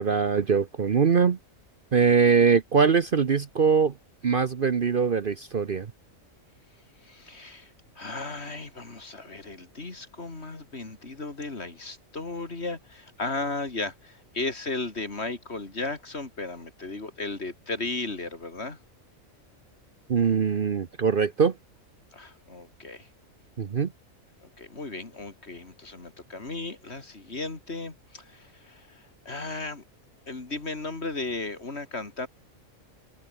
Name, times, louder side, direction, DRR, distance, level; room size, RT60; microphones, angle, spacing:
voice 1, 0.0-1.4 1.9-3.9 4.2-5.9 20.1-21.5 23.6-23.9, right 6 dB, 45° right, 1.0 m, -22 dB
voice 2, 7.0-18.8 22.1-23.1 24.4-29.8 30.3-32.3, left 3 dB, 50° left, 3.3 m, -35 dB
omnidirectional pair, 1.4 m